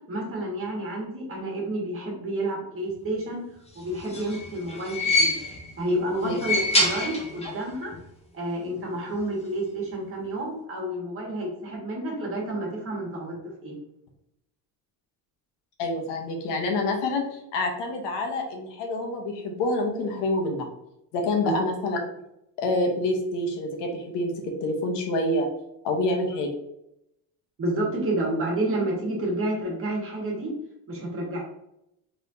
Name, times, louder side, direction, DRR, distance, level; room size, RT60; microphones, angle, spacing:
voice 1, 0.1-3.4 3.7-5.3 5.8-8.0 8.3-13.8 21.4-21.5 27.6-30.5 30.9-31.4, right 1 dB, 30° right, -2 dB, 1.5 m, -30 dB
sound 1, 3.8-5.8 6.2-7.7 7.9-8.0 9.1-9.2, left 1 dB, 15° left, 0.8 m, -26 dB
voice 2, 6.2-6.6 15.8-20.7 21.1-22.0 22.6-25.5 25.8-26.5, left 2 dB, 75° left, 2 dB, 1.1 m, -27 dB
4.2 x 3.4 x 2.7 m, 0.81 s
cardioid pair, 145°, 43 cm